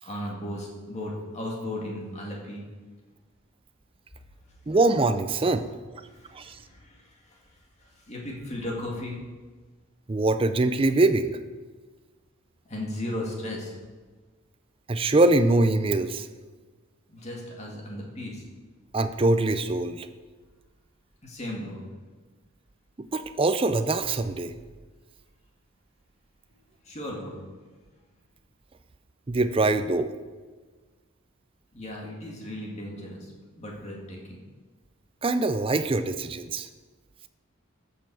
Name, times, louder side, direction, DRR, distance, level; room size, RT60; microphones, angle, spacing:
voice 1, 0.0-2.7 6.1-7.4 7.8-9.2 12.7-13.7 17.1-18.4 21.2-21.8 26.8-27.4 31.7-33.3 33.6-34.4, left 1 dB, 30° left, -2 dB, 2.1 m, -36 dB
voice 2, 4.7-5.7 6.3-6.6 10.1-11.3 14.9-16.3 18.9-20.1 23.0-24.5 29.3-30.1 35.2-36.7, right 2 dB, 25° right, 11 dB, 0.4 m, -23 dB
13.5 x 6.9 x 4.8 m, 1.4 s
head